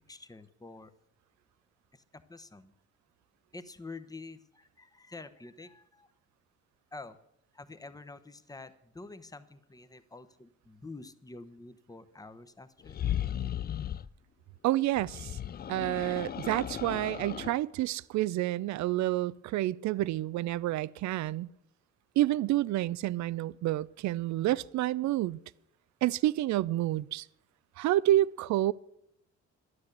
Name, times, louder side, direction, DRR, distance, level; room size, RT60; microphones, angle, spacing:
voice 1, 0.1-0.9 1.9-2.7 3.5-6.1 6.9-7.2 7.5-13.0, left 3 dB, 10° left, 0.9 m, -48 dB
sound 1, 12.8-14.1 15.0-17.6, left 10 dB, 35° left, 0.4 m, -36 dB
voice 2, 14.6-15.3 15.7-21.5 22.2-25.4 26.0-27.3 27.8-28.7, right 15 dB, 70° right, 0.4 m, -29 dB
12.0 x 9.8 x 6.6 m
cardioid pair, 90°, 30 cm